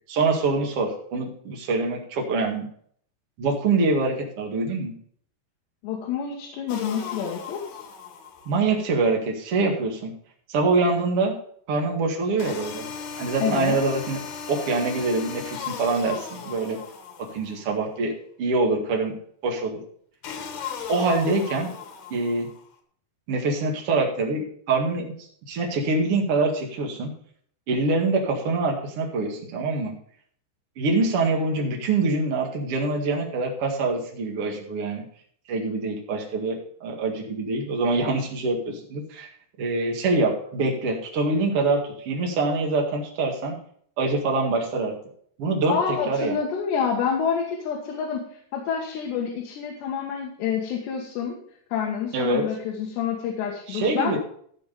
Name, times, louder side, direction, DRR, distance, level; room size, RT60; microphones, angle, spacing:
voice 1, 0.1-2.7 3.4-4.9 8.5-10.1 10.5-11.3 11.7-12.8 13.2-14.2 14.5-16.8 17.3-19.2 19.4-19.8 20.9-21.7 22.1-22.5 23.3-25.1 25.5-27.1 27.7-29.9 30.8-35.0 35.5-39.3 39.6-43.5 44.0-44.9 45.4-45.8 46.1-46.4 52.1-52.4 53.7-54.2, right 3 dB, 45° right, 1 dB, 2.2 m, -25 dB
voice 2, 5.8-7.6 13.4-13.8 45.7-48.2 48.5-51.4 51.7-54.2, left 7 dB, 90° left, 0 dB, 3.7 m, -28 dB
sound 1, 6.7-8.7 12.4-17.7 20.2-22.6, left 6 dB, 70° left, 3.3 m, -37 dB
14.0 x 5.1 x 6.6 m, 0.62 s
omnidirectional pair, 4.8 m